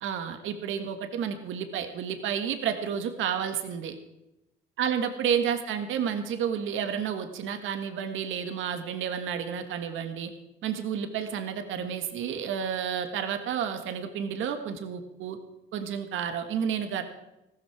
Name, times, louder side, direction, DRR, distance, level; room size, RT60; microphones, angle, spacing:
voice 1, 0.0-3.9 4.8-10.3 10.6-15.4 15.7-17.0, right 8 dB, 85° right, 8 dB, 1.7 m, -31 dB
15.5 x 13.5 x 4.9 m, 0.91 s
cardioid pair, 90°, 20 cm